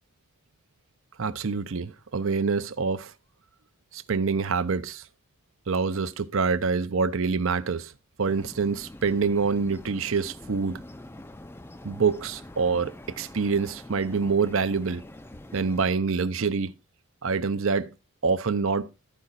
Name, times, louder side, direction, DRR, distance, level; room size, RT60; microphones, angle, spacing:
voice 1, 1.2-3.1 3.9-5.0 5.7-7.9 8.2-10.8 11.8-15.0 15.5-16.7 17.2-17.9 18.2-18.9, right 5 dB, 65° right, 0.7 m, -26 dB
sound 1, 8.2-15.9, left 1 dB, 10° left, 0.4 m, -45 dB
13.0 x 4.9 x 4.1 m
head